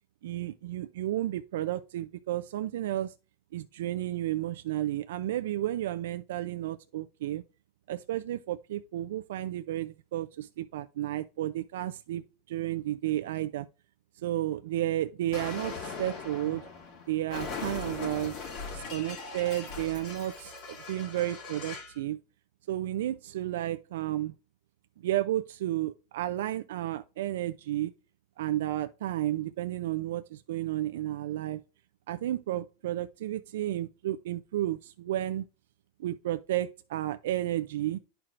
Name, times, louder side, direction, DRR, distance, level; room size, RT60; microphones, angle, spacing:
voice 1, 0.2-3.1 3.5-7.4 7.9-13.7 14.2-16.6 17.1-18.3 18.7-22.2 22.7-24.3 25.0-27.9 28.4-31.6 32.1-35.4 36.0-38.0, right 13 dB, 80° right, 0.3 m, -32 dB
Explosion, 15.3-22.0, left 4 dB, 55° left, 2.4 m, -40 dB
11.0 x 4.5 x 2.5 m
supercardioid pair, 145°, 0 cm